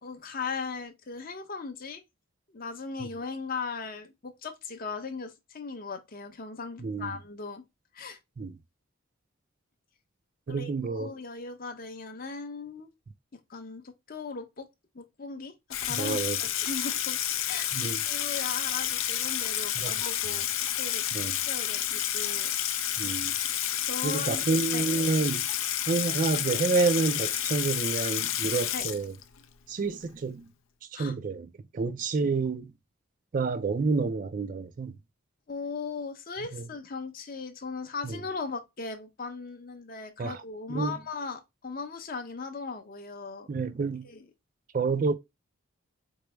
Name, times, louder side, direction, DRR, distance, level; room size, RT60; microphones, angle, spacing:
voice 1, 0.0-2.0 2.5-7.6 7.9-8.2 10.5-12.9 13.3-14.7 14.9-17.2 17.5-20.5 20.7-21.0 21.4-22.5 23.8-24.5 24.7-24.9 28.7-28.9 30.9-31.1 35.5-43.5 44.0-44.2, left 4 dB, 40° left, 0.7 m, -38 dB
voice 2, 6.8-7.2 8.4-8.6 10.5-11.1 15.9-16.4 17.7-18.0 19.8-19.9 21.1-21.3 23.0-23.3 24.0-25.5 25.9-29.1 29.7-30.5 30.9-32.7 33.3-35.0 36.5-36.6 38.0-38.2 40.2-40.4 40.7-41.0 43.5-44.1 44.7-45.1, right 4 dB, 40° right, 0.3 m, -29 dB
Water tap faucet / Sink (filling or washing), 15.7-29.4, left 11 dB, 75° left, 0.5 m, -30 dB
4.6 x 2.0 x 3.1 m
head